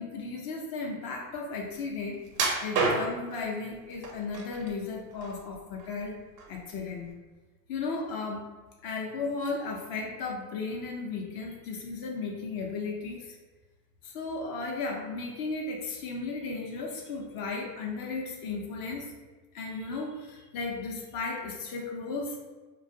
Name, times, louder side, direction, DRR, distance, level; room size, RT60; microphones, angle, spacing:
voice 1, 0.0-2.2 2.6-6.2 6.5-7.1 7.7-8.5 8.8-13.4 14.0-19.1 19.5-22.4, left 4 dB, 50° left, 0 dB, 0.6 m, -35 dB
sound 1, 2.3-3.4 4.0-4.7 5.1-6.0 6.4-6.6 7.1-7.2, right 3 dB, 90° right, 0.7 m, -29 dB
2.3 x 2.2 x 2.6 m, 1.2 s
hypercardioid pair, 95°, 47 cm